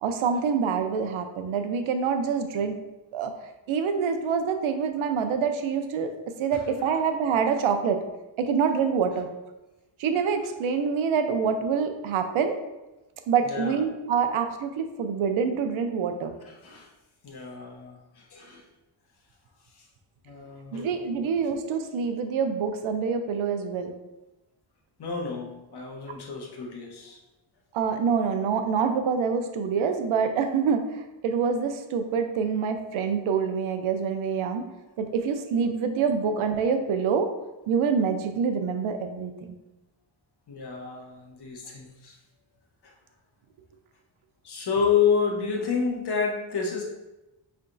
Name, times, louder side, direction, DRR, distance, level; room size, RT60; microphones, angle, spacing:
voice 1, 0.0-2.8 3.1-3.3 3.7-6.1 6.4-8.0 8.4-9.3 10.0-12.6 13.3-16.4 20.7-23.9 27.7-34.7 35.0-37.3 37.7-39.6, right 6 dB, 90° right, 6 dB, 0.6 m, -26 dB
voice 2, 13.4-13.8 16.5-16.9 17.2-18.6 19.8-19.9 20.2-21.0 25.0-27.2 28.1-28.2 40.5-42.1 42.8-42.9 44.4-46.8, left 6 dB, 55° left, 0 dB, 1.0 m, -29 dB
5.5 x 3.4 x 2.6 m, 1.0 s
cardioid pair, 105°, 46 cm